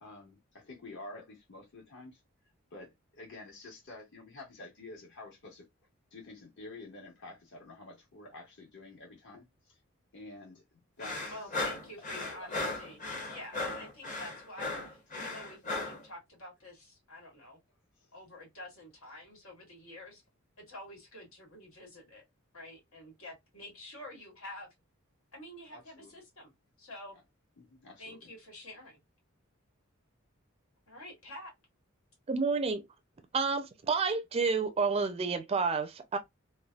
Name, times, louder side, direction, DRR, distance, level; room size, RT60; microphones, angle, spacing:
voice 1, 0.0-2.2 2.7-5.7 6.1-9.8 10.1-10.6 11.0-11.4 12.1-12.8 13.3-13.4 25.7-26.3 27.6-28.3, left 2 dB, 60° left, 1.4 m, -49 dB
sound 1, 11.0-16.0, left 2 dB, 40° left, 0.9 m, -36 dB
voice 2, 11.3-13.0 13.3-17.6 18.1-20.2 20.6-22.2 22.5-24.7 25.3-26.5 26.8-27.2 28.0-29.0 30.9-31.5, left 1 dB, 90° left, 1.7 m, -48 dB
voice 3, 32.3-32.8 33.3-36.2, right 4 dB, 30° right, 0.4 m, -29 dB
3.2 x 2.2 x 2.3 m
head